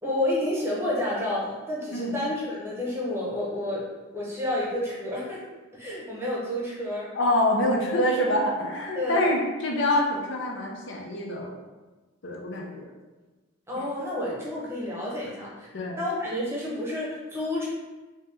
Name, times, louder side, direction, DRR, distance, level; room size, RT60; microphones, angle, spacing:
voice 1, 0.0-3.9 4.1-5.4 5.7-7.1 8.9-9.3 13.7-15.7 16.0-17.7, left 1 dB, 10° right, -6 dB, 0.9 m, -30 dB
voice 2, 7.1-11.6 12.2-12.9 15.7-16.0, left 1 dB, 60° left, -1 dB, 0.5 m, -26 dB
3.4 x 2.8 x 3.4 m, 1.2 s
head